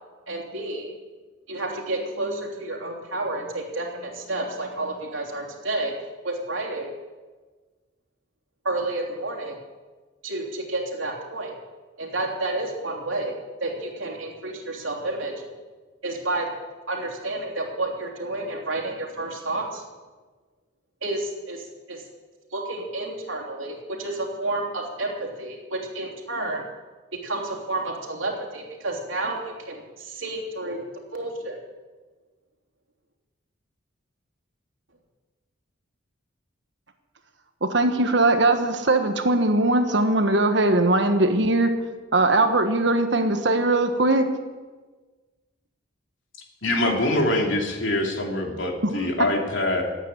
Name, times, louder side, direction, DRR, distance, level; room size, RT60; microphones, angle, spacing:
voice 1, 0.3-0.9 1.5-5.9 6.2-6.9 8.6-9.6 10.2-11.5 12.0-13.3 13.6-15.3 16.0-16.5 16.9-19.8 21.0-22.0 22.5-26.6 27.2-29.4 29.7-30.8 31.1-31.6, right 2 dB, 80° right, 0 dB, 3.2 m, -30 dB
voice 2, 37.6-41.7 42.1-44.3, right 2 dB, 60° right, 7 dB, 1.4 m, -20 dB
voice 3, 46.6-49.8, left 1 dB, 70° left, 2 dB, 2.8 m, -24 dB
14.5 x 9.0 x 9.1 m, 1.3 s
head